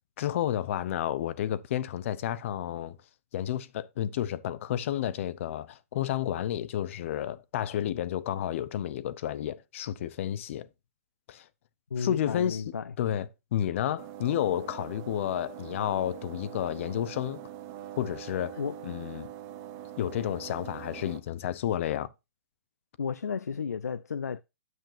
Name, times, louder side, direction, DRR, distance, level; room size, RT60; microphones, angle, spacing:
voice 1, 0.2-3.0 3.3-10.7 11.3-11.5 12.0-12.6 13.0-17.4 18.0-19.3 20.0-22.1, left 11 dB, 55° left, 0.7 m, -31 dB
voice 2, 11.9-12.9 18.6-18.8 23.0-24.4, left 6 dB, 85° left, 0.4 m, -33 dB
sound 1, 14.0-21.2, right 11 dB, 35° right, 1.0 m, -43 dB
9.3 x 7.4 x 2.6 m
hypercardioid pair, 120°, 9 cm